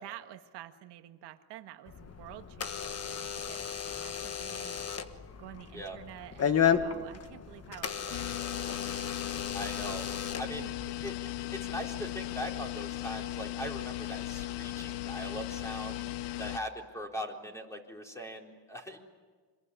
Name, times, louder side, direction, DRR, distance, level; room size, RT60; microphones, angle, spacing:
voice 1, 0.0-9.7 10.5-10.7, right 13 dB, 85° right, 7 dB, 1.7 m, -50 dB
Door / Alarm, 1.9-11.1, left 7 dB, 35° left, 1.4 m, -34 dB
sound 1, 8.1-16.6, left 15 dB, 85° left, 0.9 m, -37 dB
voice 2, 9.5-10.1 10.4-10.6 11.0-11.2 11.5-16.0 16.4-19.0, equal, 5° left, 1 dB, 4.0 m, -40 dB
26.5 x 22.0 x 9.9 m, 1.5 s
cardioid pair, 125°, 41 cm